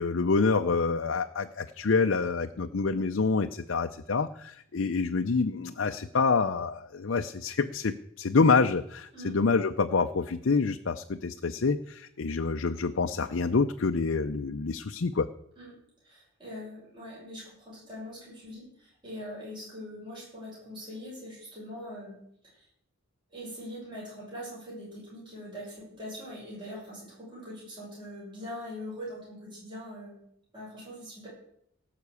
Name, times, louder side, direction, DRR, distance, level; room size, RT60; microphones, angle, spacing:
voice 1, 0.0-15.3, left 4 dB, 60° left, 7 dB, 0.5 m, -27 dB
voice 2, 16.0-22.1 22.4-22.7 23.3-30.2 30.5-31.3, equal, 20° right, -6 dB, 6.7 m, -42 dB
17.5 x 6.0 x 8.3 m, 0.73 s
head